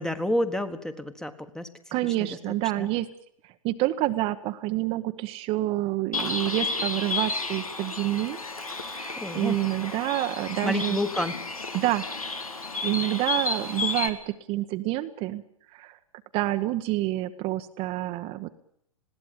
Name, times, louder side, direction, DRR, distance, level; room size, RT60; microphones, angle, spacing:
voice 1, 0.0-1.7 2.0-2.3 2.8-2.9 9.2-9.6 10.6-11.3, left 1 dB, 5° left, 10 dB, 1.3 m, -29 dB
voice 2, 1.9-3.1 3.4-11.0 11.7-12.1 12.8-15.4 15.7-16.0 16.3-18.6, right 17 dB, 35° right, 8 dB, 1.0 m, -28 dB
Bird, 6.1-14.1, left 3 dB, 90° left, 2.1 m, -32 dB
20.5 x 16.5 x 9.0 m, 0.69 s
figure-of-eight pair, 110°, 18 cm